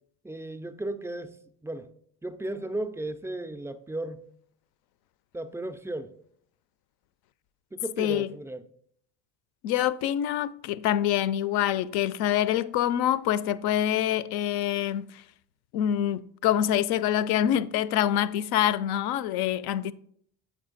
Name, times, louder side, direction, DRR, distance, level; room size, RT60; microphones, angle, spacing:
voice 1, 0.2-1.4 1.6-1.9 2.2-4.2 5.3-6.1 7.7-8.6, right 1 dB, 5° right, 0.3 m, -35 dB
voice 2, 8.0-8.3 9.6-15.2 15.7-19.9, left 11 dB, 55° left, 0.5 m, -26 dB
7.8 x 4.4 x 3.8 m
hypercardioid pair, 55°, 46 cm